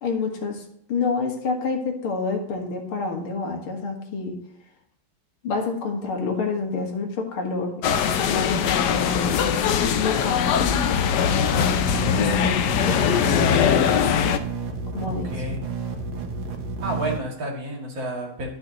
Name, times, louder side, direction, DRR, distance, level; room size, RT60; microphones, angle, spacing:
voice 1, 0.0-0.6 0.9-4.4 5.4-9.4 10.0-10.7 11.2-11.6 12.1-13.6 14.9-15.3, left 4 dB, 85° left, 2 dB, 2.4 m, -28 dB
sound 1, 7.8-14.4, left 8 dB, 70° left, 1.1 m, -21 dB
sound 2, 11.3-17.2, right 3 dB, 85° right, 2.0 m, -31 dB
voice 2, 15.1-15.6 16.8-18.5, right 1 dB, 65° right, -1 dB, 2.9 m, -31 dB
12.5 x 6.0 x 3.0 m, 0.72 s
omnidirectional pair, 2.3 m